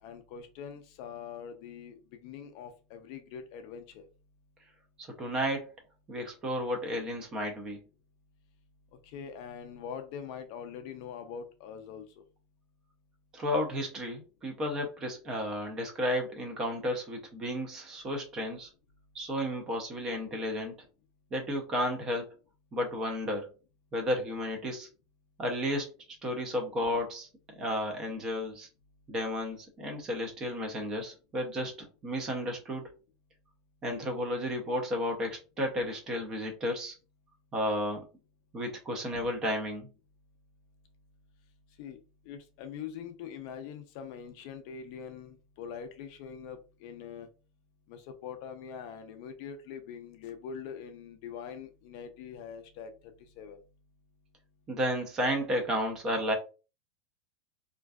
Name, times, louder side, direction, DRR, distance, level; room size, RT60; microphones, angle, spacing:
voice 1, 0.0-4.0 9.0-12.1 41.8-42.0 42.3-47.3 47.9-52.9 53.4-53.6, left 7 dB, 40° left, 7 dB, 0.3 m, -43 dB
voice 2, 5.2-5.7 6.1-7.8 13.3-18.7 19.1-20.7 21.3-22.3 22.7-23.5 23.9-24.9 25.4-27.3 27.6-28.7 29.1-31.7 32.0-32.8 33.8-36.9 37.5-38.0 38.5-39.9 54.7-56.3, equal, 20° right, 3 dB, 0.5 m, -32 dB
2.5 x 2.2 x 2.2 m, 0.32 s
supercardioid pair, 180°, 3 cm